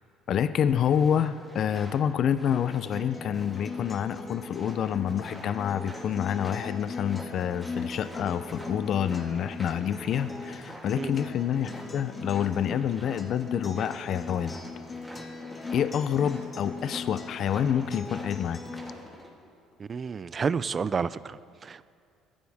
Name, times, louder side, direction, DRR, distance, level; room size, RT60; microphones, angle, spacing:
voice 1, 0.3-14.5 15.7-18.6, left 9 dB, 55° left, 13 dB, 0.6 m, -28 dB
sound 1, 0.6-19.3, equal, ahead, 2.9 m, -47 dB
Acoustic guitar, 2.9-18.9, left 3 dB, 25° left, 1.7 m, -39 dB
voice 2, 19.8-21.9, right 5 dB, 30° right, 17 dB, 0.4 m, -30 dB
21.0 x 14.5 x 3.6 m, 2.3 s
cardioid pair, 115°, 0 cm